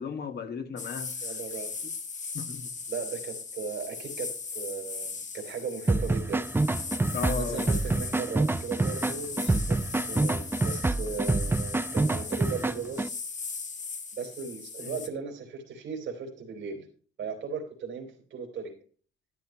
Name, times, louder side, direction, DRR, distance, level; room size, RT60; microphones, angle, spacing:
voice 1, 0.0-1.1 2.3-2.7 7.1-7.7 14.8-15.0, left 6 dB, 55° left, 1.8 m, -35 dB
sound 1, 0.8-15.1, left 5 dB, 40° left, 1.7 m, -38 dB
voice 2, 1.2-1.7 2.9-6.4 7.3-13.1 14.1-16.9 17.2-18.7, right 5 dB, 65° right, 3.3 m, -37 dB
sound 2, 5.9-13.1, right 2 dB, 10° right, 0.5 m, -27 dB
12.0 x 11.0 x 2.9 m
cardioid pair, 90°, 20 cm